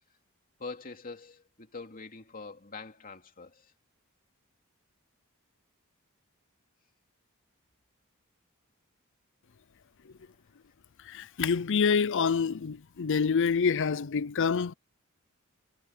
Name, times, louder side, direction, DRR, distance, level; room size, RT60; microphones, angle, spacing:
voice 1, 0.6-3.7, left 4 dB, 40° left, 2.7 m, -44 dB
voice 2, 11.0-14.7, left 6 dB, 60° left, 0.6 m, -27 dB
head